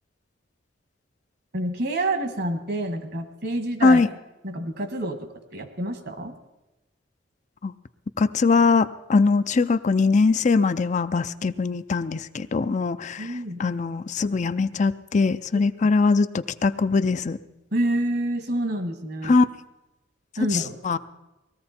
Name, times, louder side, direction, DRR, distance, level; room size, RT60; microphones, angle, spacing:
voice 1, 1.5-4.0 4.4-6.4 13.2-13.7 15.5-15.6 17.7-19.4 20.4-21.0, right 1 dB, 55° right, 7 dB, 1.6 m, -28 dB
voice 2, 8.2-13.3 13.6-17.4 19.2-19.5 20.8-21.0, left 4 dB, 40° left, 12 dB, 0.4 m, -21 dB
20.0 x 14.0 x 4.3 m, 1.0 s
head